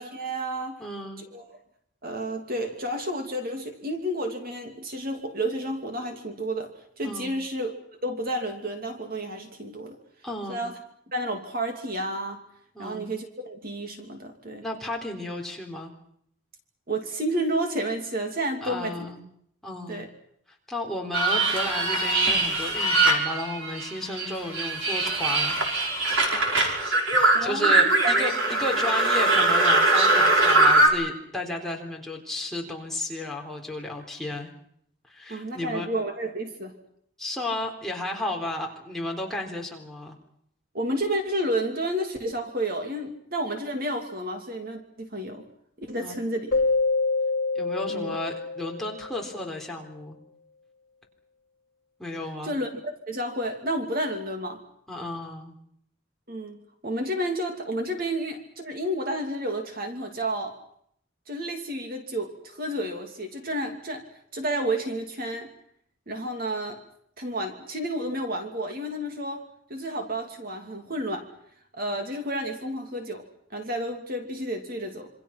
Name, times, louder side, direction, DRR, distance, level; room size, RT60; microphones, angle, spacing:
voice 1, 0.0-0.8 1.2-1.5 2.0-10.0 10.5-10.7 11.1-12.4 12.8-14.6 16.9-19.1 19.9-20.1 27.3-27.7 28.0-28.1 35.3-36.7 40.7-45.4 45.8-46.5 47.9-48.2 52.4-54.6 56.3-60.6 61.3-64.0 64.3-65.5 66.1-66.8 67.2-69.4 69.7-71.3 71.7-73.2 73.5-75.1, right 1 dB, 45° right, 4 dB, 2.8 m, -31 dB
voice 2, 0.8-1.2 7.0-7.3 10.2-10.6 12.7-13.1 14.6-15.9 18.6-19.2 19.6-20.0 20.7-25.6 27.1-34.5 35.1-35.9 37.2-40.2 46.0-46.2 47.6-50.2 52.0-52.5 54.9-55.6, left 1 dB, ahead, -1 dB, 3.8 m, -33 dB
sound 1, 21.1-23.9 24.1-30.9, right 2 dB, 75° right, 5.4 m, -21 dB
Keyboard (musical), 46.5-49.2, left 3 dB, 50° left, 2.4 m, -26 dB
27.0 x 25.0 x 6.0 m, 0.68 s
head